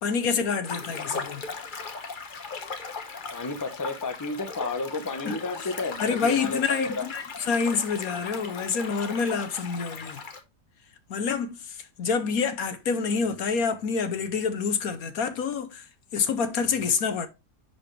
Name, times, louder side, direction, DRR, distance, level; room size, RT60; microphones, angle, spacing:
voice 1, 0.0-1.5 5.2-5.7 6.0-10.2 11.1-17.3, left 5 dB, 60° left, 1.3 m, -27 dB
sound 1, 0.6-10.4, left 4 dB, 35° left, 1.0 m, -38 dB
voice 2, 3.3-7.0, left 3 dB, 15° left, 0.6 m, -31 dB
10.5 x 4.4 x 3.3 m
omnidirectional pair, 1.8 m